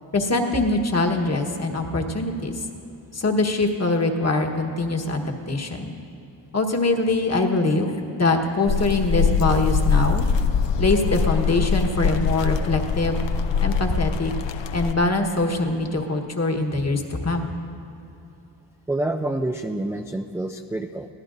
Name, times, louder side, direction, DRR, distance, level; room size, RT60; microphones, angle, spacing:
voice 1, 0.1-2.5 3.1-5.9 6.5-10.2 10.8-13.2 13.6-14.3 14.7-17.5, left 2 dB, 35° left, 3 dB, 1.3 m, -23 dB
sound 1, 8.7-14.9, left 5 dB, 75° left, 0.7 m, -23 dB
voice 2, 18.9-21.1, right 1 dB, 5° right, 4 dB, 0.4 m, -27 dB
23.5 x 17.0 x 2.6 m, 2.9 s
cardioid pair, 100°, 44 cm